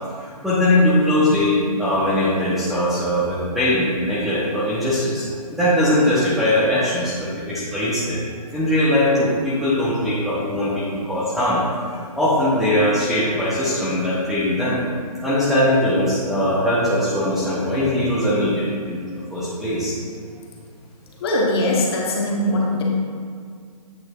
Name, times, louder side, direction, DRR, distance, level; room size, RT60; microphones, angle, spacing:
voice 1, 0.2-8.2 8.5-14.8 15.2-19.9, left 1 dB, ahead, -11 dB, 0.8 m, -21 dB
voice 2, 21.2-22.8, left 1 dB, 40° left, -2 dB, 1.2 m, -21 dB
8.1 x 6.4 x 2.4 m, 2.1 s
figure-of-eight pair, 145°, 20 cm